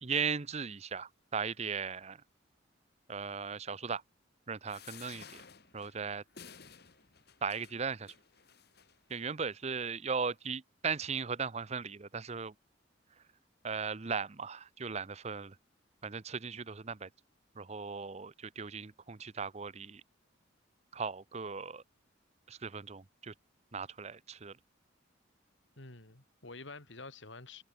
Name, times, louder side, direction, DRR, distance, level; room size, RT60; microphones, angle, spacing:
voice 1, 0.0-2.2 3.1-4.0 4.5-5.4 5.7-6.2 7.4-8.1 9.1-12.5 13.6-15.6 16.0-17.1 17.6-20.0 20.9-21.8 22.5-23.3 23.7-24.6, right 5 dB, 35° right, 0.7 m, -37 dB
sound 1, 4.7-9.2 9.9-10.0 10.2-10.3, left 7 dB, 55° left, 2.1 m, -55 dB
voice 2, 25.8-27.6, left 3 dB, 70° left, 2.8 m, -48 dB
head